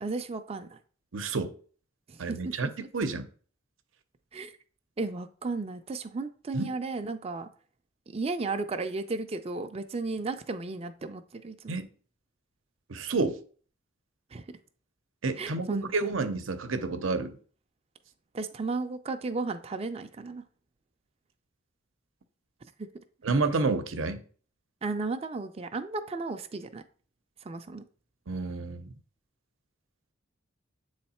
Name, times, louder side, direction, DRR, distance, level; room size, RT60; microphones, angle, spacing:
voice 1, 0.0-0.8 2.1-2.9 4.3-4.6 5.0-7.5 8.1-11.7 14.3-14.4 15.4-16.1 18.3-20.4 22.8-22.9 24.8-26.8 27.4-27.8, right 3 dB, 30° right, 0.4 m, -34 dB
voice 2, 1.1-1.5 2.2-2.7 2.9-3.3 6.5-6.7 11.7-11.9 12.9-13.4 15.2-17.4 23.2-24.2 28.3-28.9, right 3 dB, 85° right, 0.7 m, -29 dB
7.7 x 3.2 x 4.2 m
head